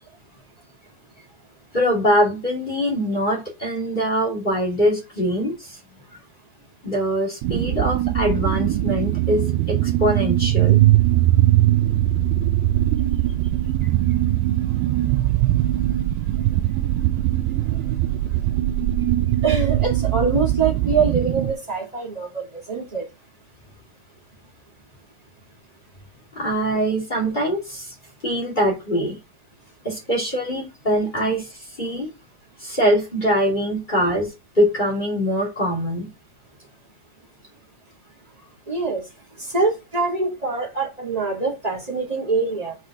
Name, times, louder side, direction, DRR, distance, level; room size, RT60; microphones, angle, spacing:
voice 1, 1.7-5.8 6.8-10.8 26.3-27.9 28.2-29.2 29.8-32.1 32.6-34.3 34.5-36.1, equal, 15° left, 2.1 m, -23 dB
sound 1, 7.4-21.5, right 14 dB, 80° right, 2.4 m, -20 dB
voice 2, 19.4-23.0 38.7-39.0 39.4-42.7, right 4 dB, 15° right, 1.5 m, -24 dB
8.0 x 4.9 x 4.9 m
omnidirectional pair, 5.1 m